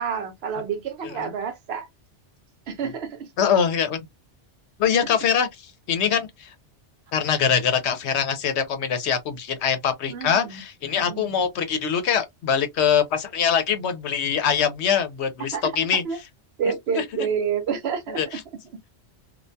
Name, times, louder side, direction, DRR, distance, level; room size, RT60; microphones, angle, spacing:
voice 1, 0.0-1.9 2.7-3.3 4.9-5.1 10.1-10.6 11.1-11.4 15.5-15.6 16.0-16.2 16.6-18.4, right 6 dB, 65° right, 0.8 m, -29 dB
voice 2, 3.4-4.0 4.8-6.5 7.1-16.0 16.9-17.0 18.2-18.4, left 7 dB, 75° left, 0.9 m, -23 dB
2.4 x 2.1 x 2.5 m
omnidirectional pair, 1.2 m